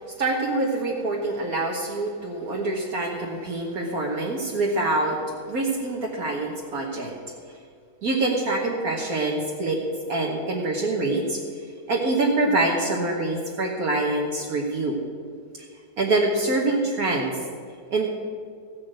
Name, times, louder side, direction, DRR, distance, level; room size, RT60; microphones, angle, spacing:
voice 1, 0.2-5.2 5.5-7.1 8.0-9.8 10.1-11.4 11.9-15.0 16.0-17.4 17.9-18.1, right 2 dB, 60° right, -1 dB, 1.6 m, -25 dB
15.0 x 6.4 x 7.6 m, 2.1 s
omnidirectional pair, 1.7 m